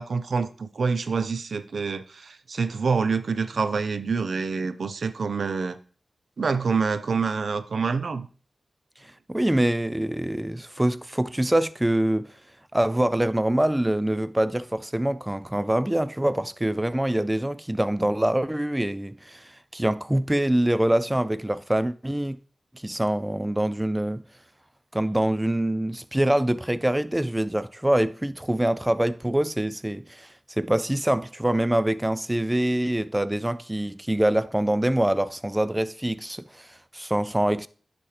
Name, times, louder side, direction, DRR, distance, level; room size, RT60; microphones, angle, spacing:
voice 1, 0.0-5.8 6.4-8.3, right 5 dB, 75° right, 0.5 m, -26 dB
voice 2, 9.0-12.3 12.7-22.4 22.8-24.2 24.9-30.3 30.6-37.7, right 1 dB, 15° right, 0.3 m, -25 dB
10.0 x 4.2 x 3.2 m
cardioid pair, 40°, 0 cm